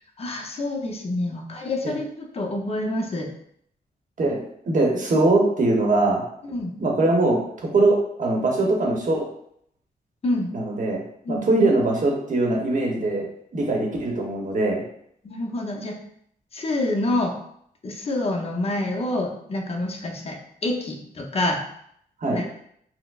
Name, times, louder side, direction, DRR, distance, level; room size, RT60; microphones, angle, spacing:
voice 1, 0.2-3.3 6.4-6.7 10.2-10.5 11.2-11.7 15.2-15.9 16.5-17.4 17.8-21.6 22.3-22.4, left 1 dB, 40° left, 0 dB, 0.7 m, -27 dB
voice 2, 4.2-6.2 6.8-7.4 7.7-9.3 10.5-11.0 11.3-13.3 13.5-14.8 22.2-22.4, right 2 dB, 55° right, -1 dB, 0.9 m, -21 dB
4.4 x 2.0 x 2.4 m, 0.69 s
cardioid pair, 85°, 16 cm